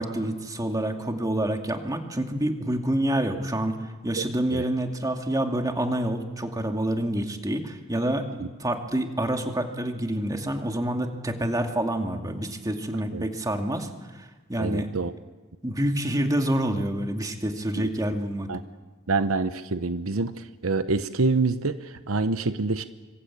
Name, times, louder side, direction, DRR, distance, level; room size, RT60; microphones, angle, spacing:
voice 1, 0.0-3.8 4.0-13.9 14.2-14.9 15.6-18.5, right 1 dB, 15° right, 4 dB, 2.4 m, -27 dB
voice 2, 14.6-15.1 17.8-17.9 18.5-18.6 19.1-22.8, right 3 dB, 75° right, 11 dB, 1.0 m, -26 dB
25.5 x 24.5 x 8.5 m, 1.3 s
head